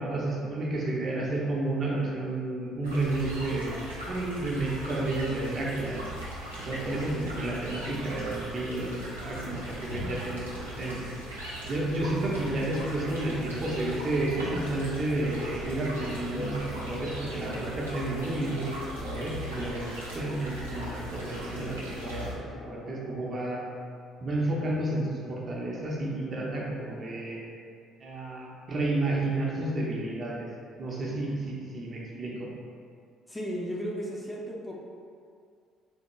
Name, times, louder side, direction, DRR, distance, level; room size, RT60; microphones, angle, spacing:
voice 1, 0.0-3.7 4.1-6.0 6.6-11.1 11.6-19.9 20.1-22.3 22.7-23.6 24.2-27.4 28.0-30.5 30.8-32.5, right 2 dB, 40° right, -4 dB, 0.6 m, -31 dB
sound 1, 2.8-22.3, right 1 dB, 90° right, 0.5 m, -39 dB
sound 2, 12.7-23.5, left 1 dB, 80° left, 0.4 m, -46 dB
voice 2, 33.3-34.7, equal, 15° left, -3 dB, 0.5 m, -34 dB
3.4 x 2.1 x 3.0 m, 2.3 s
figure-of-eight pair, 50°, 0 cm